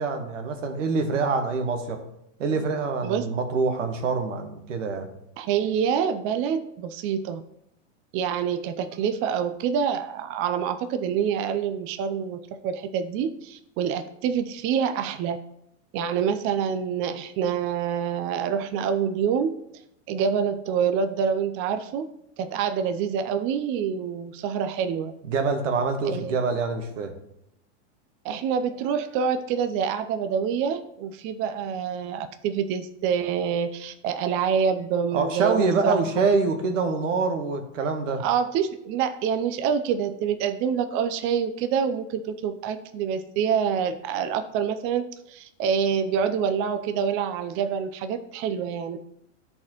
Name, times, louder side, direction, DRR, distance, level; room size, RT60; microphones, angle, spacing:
voice 1, 0.0-2.0 2.4-5.1 25.3-27.1 35.1-38.2, right 4 dB, 85° right, 5 dB, 1.3 m, -25 dB
voice 2, 5.4-7.4 8.1-15.4 15.9-19.5 20.1-22.0 22.4-25.1 26.0-26.4 28.2-36.0 38.2-49.0, right 7 dB, 35° right, 9 dB, 0.5 m, -26 dB
12.5 x 4.2 x 3.0 m, 0.79 s
supercardioid pair, 125°, 37 cm